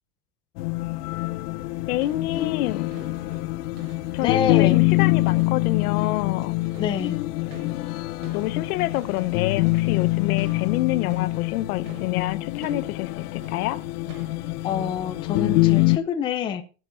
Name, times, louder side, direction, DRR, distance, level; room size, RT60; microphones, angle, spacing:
sound 1, 0.6-16.0, left 20 dB, 90° left, 0.6 m, -25 dB
sound 2, 1.5-15.0, right 3 dB, 80° right, 5.3 m, -48 dB
voice 1, 1.9-2.9 4.1-6.6 8.3-13.8, left 16 dB, 75° left, 1.0 m, -27 dB
voice 2, 4.2-4.8 6.8-7.2 14.6-16.6, left 8 dB, 10° left, 0.4 m, -26 dB
20.5 x 7.7 x 2.6 m
supercardioid pair, 160°, 45 cm